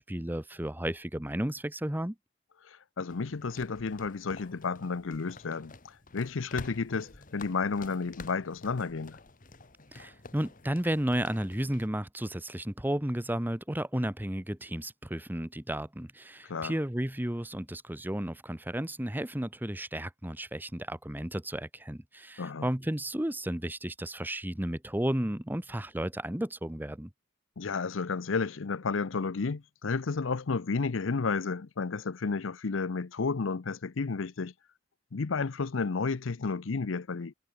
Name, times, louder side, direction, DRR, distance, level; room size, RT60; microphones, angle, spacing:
voice 1, 0.0-2.1 9.9-27.1, right 1 dB, 10° right, 1.0 m, -33 dB
voice 2, 2.7-9.2 16.5-16.7 22.4-22.7 27.6-34.5 35.1-37.3, left 4 dB, 90° left, 0.7 m, -32 dB
sound 1, 3.1-11.9, left 3 dB, 45° left, 1.8 m, -49 dB
head